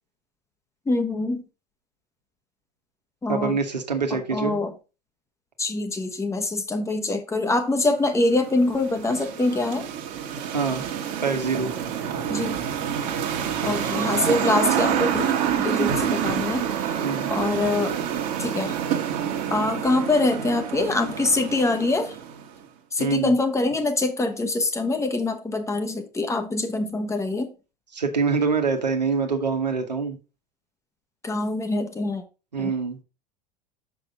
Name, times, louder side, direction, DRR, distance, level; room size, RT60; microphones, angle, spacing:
voice 1, 0.9-1.4 3.2-3.6 4.3-4.7 5.6-9.9 12.3-12.6 13.6-18.0 18.4-18.8 19.5-22.2 22.9-27.5 31.2-32.2 32.6-32.7, left 2 dB, 15° left, 1.3 m, -24 dB
voice 2, 3.3-4.6 10.5-10.8 11.2-11.7 17.0-17.3 23.0-23.3 27.9-30.2 32.5-33.0, right 5 dB, 80° right, 1.3 m, -25 dB
sound 1, 8.1-22.6, right 9 dB, 40° right, 1.6 m, -27 dB
6.5 x 6.3 x 3.6 m
figure-of-eight pair, 80°, 21 cm